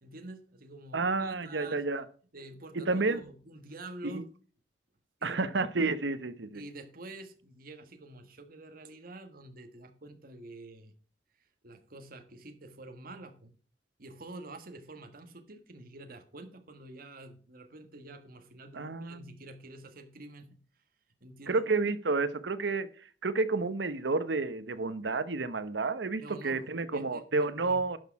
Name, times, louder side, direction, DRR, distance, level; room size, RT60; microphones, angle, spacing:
voice 1, 0.0-1.8 2.3-4.3 5.2-5.5 6.5-10.9 11.6-13.6 14.0-20.6 21.2-21.6 26.2-26.7 26.9-27.2 27.6-27.9, right 2 dB, 55° right, 7 dB, 1.5 m, -47 dB
voice 2, 0.9-2.0 2.7-3.2 4.0-4.2 5.2-6.6 18.7-19.3 21.5-22.9 23.2-28.0, right 3 dB, 75° right, 13 dB, 0.9 m, -30 dB
11.5 x 6.3 x 4.7 m, 0.41 s
head